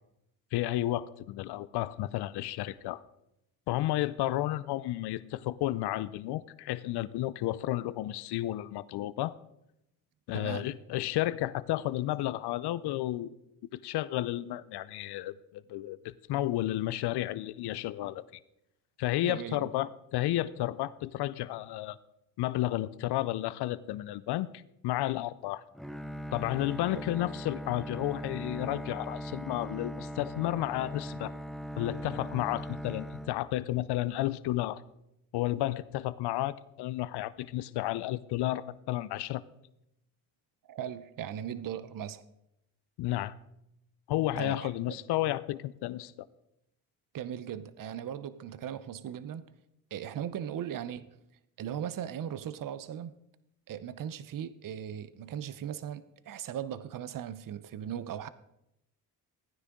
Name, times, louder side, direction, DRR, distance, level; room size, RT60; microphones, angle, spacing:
voice 1, 0.5-3.0 3.7-9.3 10.3-13.3 13.7-18.2 19.0-22.0 22.4-25.6 26.3-31.3 31.8-34.8 35.3-39.4 43.0-43.3 44.1-46.3, left 15 dB, 65° left, 0.6 m, -32 dB
voice 2, 10.3-10.7 19.2-19.7 40.7-42.2 44.4-44.9 47.1-49.5 49.9-51.1 51.6-53.2 53.7-58.3, right 9 dB, 50° right, 0.8 m, -38 dB
Bowed string instrument, 25.7-34.0, equal, ahead, 0.6 m, -40 dB
14.5 x 9.8 x 3.7 m
supercardioid pair, 60°, 43 cm